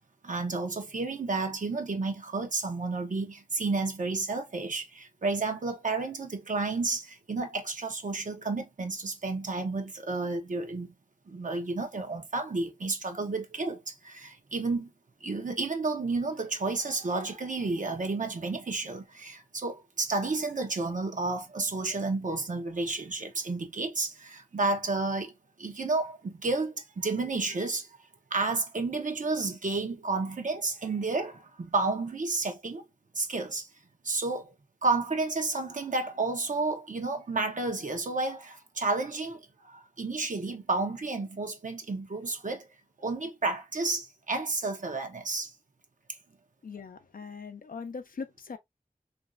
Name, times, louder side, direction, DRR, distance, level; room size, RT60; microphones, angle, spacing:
voice 1, 0.2-10.9 11.3-14.9 15.2-27.9 28.3-32.8 33.1-33.7 34.0-34.5 34.8-42.7 43.0-45.5, right 3 dB, 65° right, 0.7 m, -31 dB
voice 2, 46.6-48.6, left 5 dB, 80° left, 0.5 m, -40 dB
3.1 x 2.5 x 2.3 m
wide cardioid pair, 60°, 14 cm